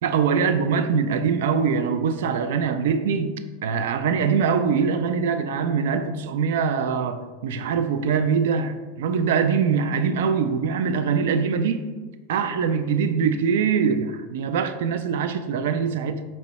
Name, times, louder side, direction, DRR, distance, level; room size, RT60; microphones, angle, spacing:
voice 1, 0.0-3.3 3.6-11.9 12.3-16.3, right 6 dB, 80° right, 10 dB, 0.3 m, -23 dB
4.5 x 2.0 x 4.0 m, 1.3 s
supercardioid pair, 150°, 0 cm